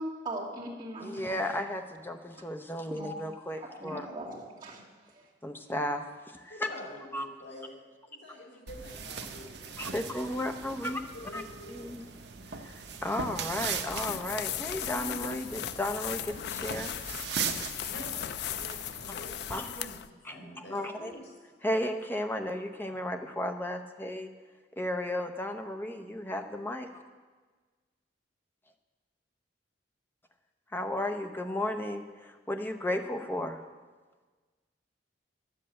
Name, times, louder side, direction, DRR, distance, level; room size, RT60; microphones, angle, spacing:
voice 1, 0.0-1.5 2.9-3.1 3.6-4.8 5.1-5.3, right 1 dB, 25° right, -7 dB, 2.7 m, -39 dB
voice 2, 1.0-4.1 5.4-6.7 7.1-7.3 9.8-11.0 11.3-11.4 11.7-12.1 12.6-16.9 19.5-19.9 20.2-20.4 20.7-21.1 21.6-24.3 24.8-27.0 30.7-33.6, left 1 dB, 10° left, 6 dB, 0.7 m, -34 dB
voice 3, 6.5-7.8 8.1-10.6 11.1-12.0 17.9-18.1 18.4-21.4, left 1 dB, 75° left, -3 dB, 4.3 m, -47 dB
sound 1, 8.7-19.6, right 6 dB, 60° right, 1.0 m, -40 dB
sound 2, 13.5-20.1, left 10 dB, 60° left, 0.3 m, -37 dB
11.5 x 7.9 x 7.7 m, 1.4 s
head